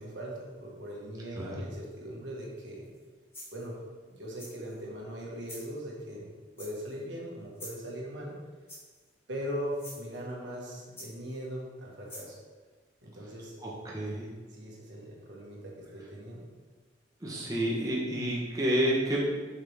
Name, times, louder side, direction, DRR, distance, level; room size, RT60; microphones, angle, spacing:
voice 1, 0.0-2.8 3.5-3.7 4.1-6.3 6.6-8.4 9.3-12.4 13.0-13.6 14.5-16.4, equal, 75° right, -3 dB, 1.8 m, -40 dB
voice 2, 1.3-1.7 13.6-14.3 17.2-19.2, right 1 dB, 20° right, -5 dB, 1.2 m, -30 dB
sound 1, 2.8-3.0 3.3-3.7 4.4-4.8 5.4-5.7 6.6-7.0 7.5-7.9 8.7-9.1 9.7-10.0 11.0-11.4 12.1-12.3, left 1 dB, 15° left, 1.8 m, -46 dB
7.6 x 5.8 x 3.6 m, 1.4 s
head